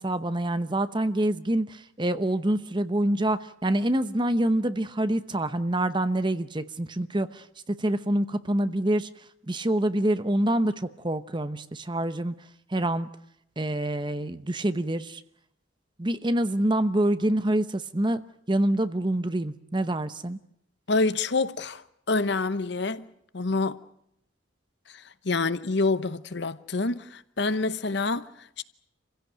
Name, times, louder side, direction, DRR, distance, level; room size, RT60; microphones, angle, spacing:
voice 1, 0.0-9.1 9.5-12.3 12.7-13.1 13.6-15.2 16.0-18.2 18.5-20.4, right 1 dB, 25° right, 0.9 m, -26 dB
voice 2, 20.9-23.8 24.9-28.6, left 3 dB, 60° left, 0.9 m, -27 dB
27.0 x 16.0 x 9.2 m
head